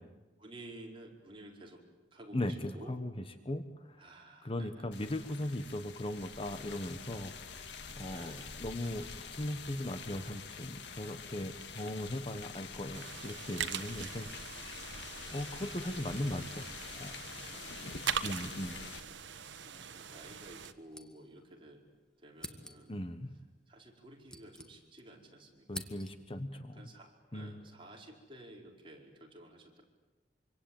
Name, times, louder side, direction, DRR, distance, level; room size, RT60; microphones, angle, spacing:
voice 1, 0.4-1.8 2.1-3.0 4.0-4.9 5.8-6.0 8.1-8.5 8.8-9.1 10.0-10.3 11.8-12.0 12.7-12.8 14.0-14.4 16.1-16.5 17.5-19.0 19.6-21.9 22.2-23.0 23.7-25.9 26.5-29.8, right 1 dB, 30° right, 0 dB, 5.0 m, -53 dB
voice 2, 2.3-3.1 3.4-4.0 4.4-7.3 8.0-9.1 9.3-14.3 15.3-16.6 17.0-17.5 18.2-18.8 22.9-23.3 25.7-26.8 27.3-27.6, left 1 dB, 30° left, 9 dB, 1.3 m, -38 dB
sound 1, 4.9-19.0, left 5 dB, 75° left, 2.0 m, -46 dB
sound 2, 12.9-20.7, right 7 dB, 90° right, 1.3 m, -42 dB
sound 3, 20.6-21.6 21.9-22.0 22.3-23.0 23.9-25.2 25.4-26.4, left 1 dB, 5° left, 1.8 m, -49 dB
26.0 x 25.5 x 8.9 m, 1.1 s
head